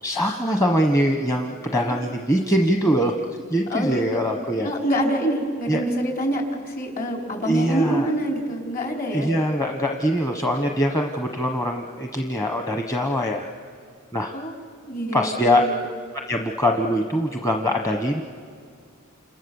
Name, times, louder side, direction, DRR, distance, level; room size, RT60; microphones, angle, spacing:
voice 1, 0.0-3.1 3.5-4.7 5.7-5.8 7.4-8.1 9.1-13.5 14.1-14.4 15.1-15.6 16.3-18.2, equal, 15° left, 3 dB, 1.2 m, -23 dB
voice 2, 3.7-4.2 4.6-9.3 14.3-14.5 14.9-15.8, right 1 dB, 45° left, 2 dB, 4.4 m, -26 dB
29.5 x 28.0 x 7.2 m, 2.3 s
head